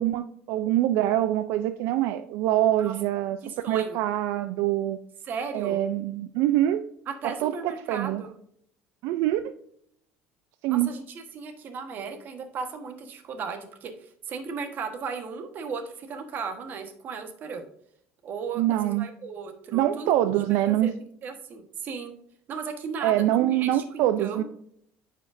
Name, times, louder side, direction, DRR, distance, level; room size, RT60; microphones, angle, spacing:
voice 1, 0.0-3.4 3.7-5.0 5.5-6.8 7.2-8.2 9.0-9.6 10.6-10.9 18.6-19.1 19.7-20.9 23.0-24.4, right 13 dB, 75° right, 10 dB, 0.4 m, -24 dB
voice 2, 3.4-4.0 5.2-5.8 7.1-8.3 10.7-13.9 14.3-17.7 18.2-20.3 20.7-20.9 21.2-22.1 22.5-24.4, right 5 dB, 45° right, 7 dB, 1.2 m, -36 dB
9.6 x 5.0 x 2.6 m, 0.68 s
cardioid pair, 135°, 4 cm